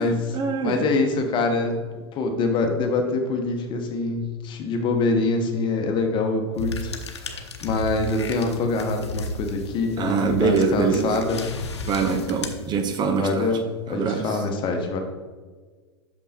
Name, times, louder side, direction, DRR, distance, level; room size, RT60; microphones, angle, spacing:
voice 1, 0.0-0.9 10.0-11.2 11.9-13.5 13.9-14.4, right 5 dB, 30° right, 6 dB, 0.7 m, -24 dB
voice 2, 0.6-1.8 2.1-11.4 13.1-13.6 13.9-15.0, left 3 dB, 35° left, 4 dB, 1.1 m, -25 dB
sound 1, 6.6-13.2, left 2 dB, 85° left, 0.8 m, -34 dB
6.4 x 5.3 x 4.2 m, 1.4 s
hypercardioid pair, 100°, 14 cm